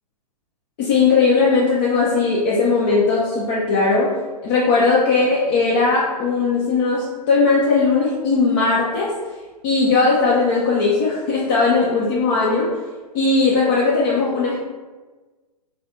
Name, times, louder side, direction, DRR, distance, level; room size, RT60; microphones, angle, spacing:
voice 1, 0.8-4.1 4.4-9.1 9.6-12.7 13.1-14.6, left 4 dB, 35° left, -6 dB, 0.5 m, -18 dB
3.2 x 2.3 x 2.7 m, 1.3 s
figure-of-eight pair, 115°, 21 cm